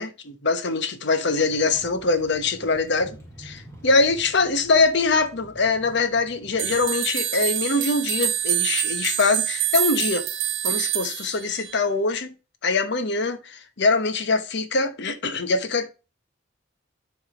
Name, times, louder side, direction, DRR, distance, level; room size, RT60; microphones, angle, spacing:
voice 1, 0.0-10.2 10.6-12.3 12.6-15.9, left 3 dB, 60° left, 0.9 m, -23 dB
Vehicle, 1.4-6.8, right 1 dB, 15° left, 1.7 m, -47 dB
sound 1, 6.6-11.8, right 12 dB, 75° right, 0.9 m, -26 dB
7.3 x 3.5 x 4.9 m
head